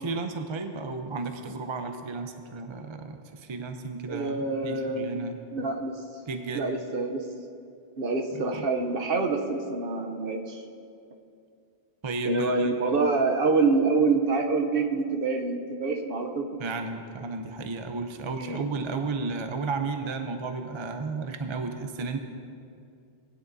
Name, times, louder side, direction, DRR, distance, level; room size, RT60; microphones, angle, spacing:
voice 1, 0.0-5.4 6.3-6.6 8.3-8.7 12.0-12.7 16.6-22.2, right 4 dB, 35° right, 6 dB, 0.5 m, -33 dB
voice 2, 4.1-6.0 6.5-7.2 8.0-10.6 12.2-16.5 18.4-18.6, right 3 dB, 60° right, 3 dB, 0.9 m, -26 dB
19.5 x 9.7 x 2.6 m, 2.5 s
omnidirectional pair, 1.1 m